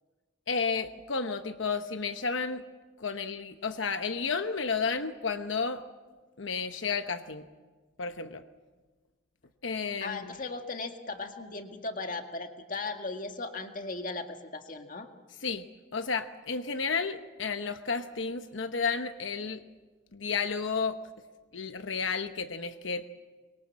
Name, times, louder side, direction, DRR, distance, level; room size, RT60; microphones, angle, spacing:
voice 1, 0.5-2.6 3.0-5.8 6.4-7.5 8.0-8.4 9.6-10.3 15.4-15.7 15.9-19.6 20.1-21.0 21.5-23.1, left 5 dB, 85° left, 8 dB, 1.0 m, -32 dB
voice 2, 10.0-15.1, left 3 dB, 45° left, 5 dB, 1.9 m, -37 dB
25.0 x 22.5 x 7.4 m, 1.3 s
head